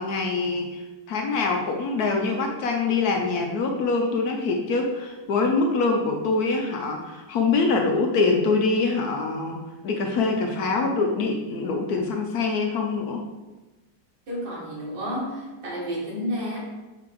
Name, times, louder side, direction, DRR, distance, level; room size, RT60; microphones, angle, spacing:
voice 1, 0.0-13.2, left 3 dB, 65° left, 2 dB, 1.1 m, -24 dB
voice 2, 14.3-16.6, equal, 80° right, -6 dB, 2.5 m, -31 dB
5.6 x 3.3 x 5.2 m, 1.1 s
omnidirectional pair, 2.0 m